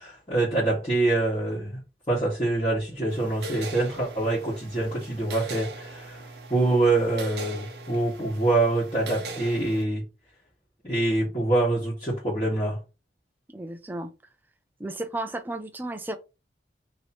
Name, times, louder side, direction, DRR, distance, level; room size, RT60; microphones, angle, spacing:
voice 1, 0.0-1.8 2.1-10.0 10.8-12.8, right 2 dB, 30° left, 1.5 m, -25 dB
sound 1, 3.1-9.8, right 2 dB, 70° right, 0.7 m, -40 dB
voice 2, 13.5-14.1 14.8-16.2, right 1 dB, 10° right, 0.4 m, -33 dB
3.0 x 2.9 x 4.2 m
head